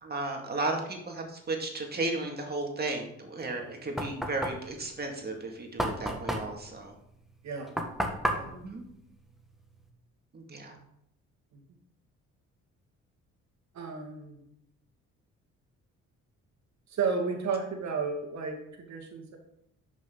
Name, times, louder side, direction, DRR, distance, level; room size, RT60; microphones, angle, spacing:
voice 1, 0.0-6.9 8.5-8.8 10.3-10.8, right 2 dB, 30° right, 2 dB, 2.2 m, -34 dB
Knock, 3.4-9.9, equal, ahead, 1.5 m, -34 dB
voice 2, 8.0-8.5 11.5-11.6 13.7-14.4 16.9-19.4, right 5 dB, 65° right, 3 dB, 2.2 m, -33 dB
11.0 x 6.2 x 3.9 m, 0.76 s
cardioid pair, 90°, 30 cm